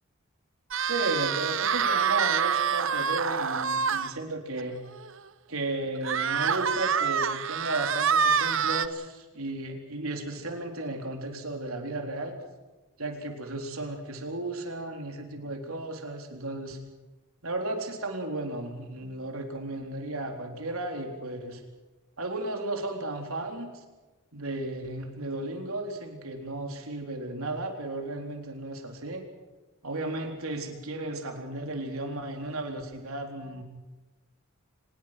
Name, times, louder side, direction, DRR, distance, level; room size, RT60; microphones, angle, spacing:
sound 1, 0.7-4.1 4.6-4.7 5.0-5.1 6.0-8.9, right 7 dB, 65° right, 0.9 m, -26 dB
voice 1, 0.9-4.8 5.5-12.3 13.0-16.8 17.4-21.6 22.2-23.7 24.3-29.2 29.8-33.6, right 2 dB, 90° right, 3 dB, 4.0 m, -34 dB
24.5 x 21.0 x 6.0 m, 1.2 s
head